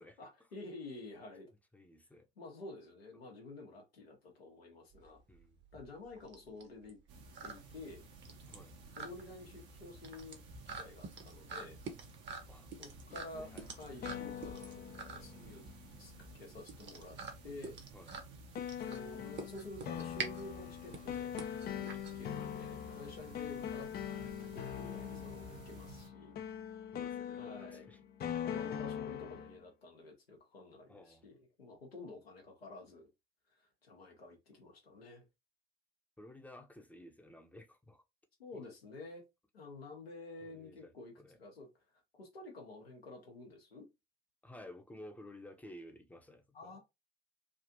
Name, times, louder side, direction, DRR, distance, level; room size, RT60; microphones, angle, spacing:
voice 1, 0.0-1.5 2.4-5.2 5.7-7.0 7.4-8.0 8.9-10.4 10.8-11.8 12.8-14.8 15.1-15.7 16.0-17.8 18.8-21.3 22.1-26.4 27.4-27.9 28.4-33.1 33.5-35.2 38.4-39.2 39.5-41.7 42.1-43.9 46.5-46.8, left 2 dB, 90° left, 1.0 m, -50 dB
voice 2, 1.7-2.3 5.3-5.6 8.5-8.8 12.5-12.7 13.1-13.7 17.9-18.1 22.3-22.5 26.9-28.0 30.9-31.3 36.2-38.0 38.5-38.6 40.4-41.4 44.4-46.8, left 1 dB, 5° left, 0.7 m, -54 dB
sound 1, 4.9-22.7, right 4 dB, 40° right, 1.0 m, -47 dB
sound 2, 7.1-26.1, right 3 dB, 55° right, 1.0 m, -55 dB
sound 3, 13.3-16.3 18.5-29.6, left 9 dB, 35° left, 0.4 m, -42 dB
3.4 x 2.4 x 2.6 m
figure-of-eight pair, 55°, 29 cm